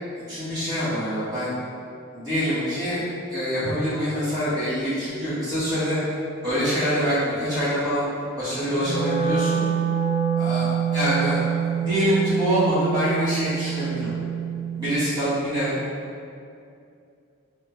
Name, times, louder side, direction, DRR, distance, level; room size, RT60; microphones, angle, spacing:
voice 1, 0.3-1.5 2.1-3.0 3.3-6.0 6.4-9.6 10.4-11.5 11.8-14.1 14.7-15.7, equal, 20° right, -14 dB, 1.4 m, -25 dB
Wind instrument woodwind instrument, 8.7-14.9, right 8 dB, 30° left, 0.4 m, -26 dB
3.6 x 2.8 x 2.3 m, 2.4 s
head